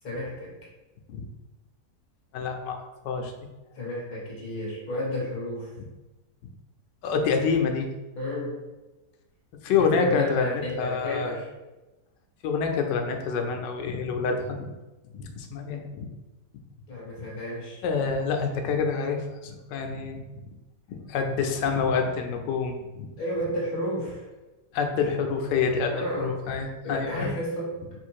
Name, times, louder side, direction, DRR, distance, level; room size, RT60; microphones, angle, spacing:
voice 1, 0.0-0.5 3.7-5.7 8.1-8.6 9.8-11.5 16.9-17.8 23.2-24.3 25.9-27.8, left 1 dB, 30° left, -5 dB, 1.3 m, -31 dB
voice 2, 2.3-2.8 3.0-3.3 7.0-7.9 9.6-11.4 12.4-14.7 15.1-16.1 17.8-20.2 21.0-23.1 24.7-27.3, left 5 dB, 90° left, 4 dB, 1.3 m, -27 dB
3.9 x 2.5 x 4.5 m, 1.1 s
omnidirectional pair, 1.8 m